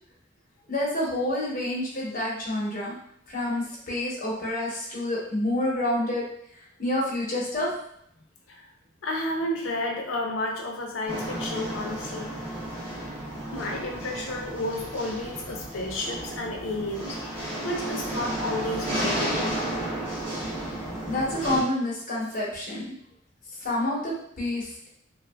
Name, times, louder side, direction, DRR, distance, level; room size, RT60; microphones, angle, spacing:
voice 1, 0.7-3.0 3.3-6.2 6.8-7.7 21.1-22.9 23.6-24.6, left 1 dB, 45° left, -5 dB, 0.9 m, -28 dB
voice 2, 9.0-12.3 13.5-19.6, left 1 dB, 90° left, 1 dB, 0.6 m, -32 dB
sound 1, 11.1-21.6, right 1 dB, 30° right, 1.2 m, -32 dB
3.0 x 2.3 x 2.2 m, 0.70 s
head